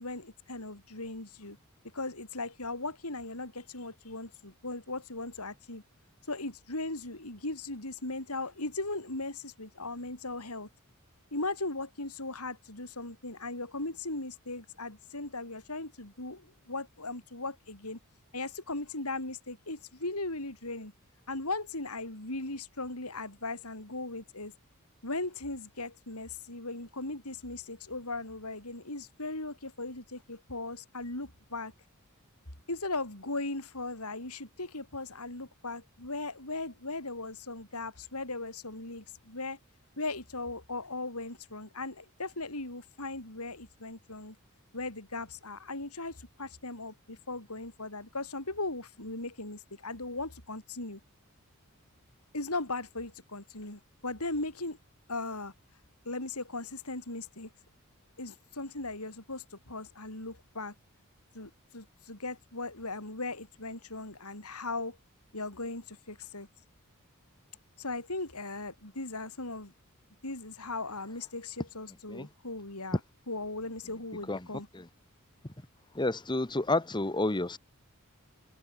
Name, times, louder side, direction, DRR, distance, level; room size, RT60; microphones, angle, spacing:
voice 1, 0.0-1.6 1.9-5.8 6.3-10.7 11.3-18.0 18.3-20.9 21.3-24.5 25.0-31.7 32.7-39.6 40.0-44.4 44.7-51.0 52.3-54.8 55.1-55.5 56.0-57.5 58.2-60.7 61.3-65.0 65.3-66.5 67.8-69.7 70.2-73.0 73.3-74.7, left 2 dB, 85° left, 7.7 m, -38 dB
voice 2, 75.9-77.6, left 2 dB, 20° left, 1.2 m, -30 dB
head